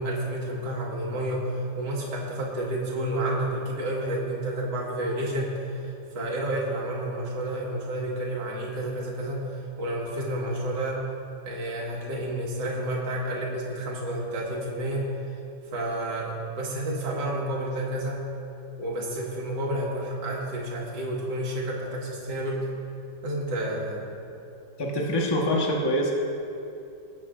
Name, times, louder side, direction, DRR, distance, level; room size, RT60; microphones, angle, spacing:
voice 1, 0.0-9.4 9.8-11.0 11.4-15.1 15.7-18.2 18.8-22.7 23.2-24.1, right 1 dB, 65° right, -4 dB, 2.3 m, -30 dB
voice 2, 24.8-26.1, equal, 15° left, -1 dB, 0.9 m, -25 dB
20.5 x 8.5 x 2.5 m, 2.7 s
omnidirectional pair, 2.1 m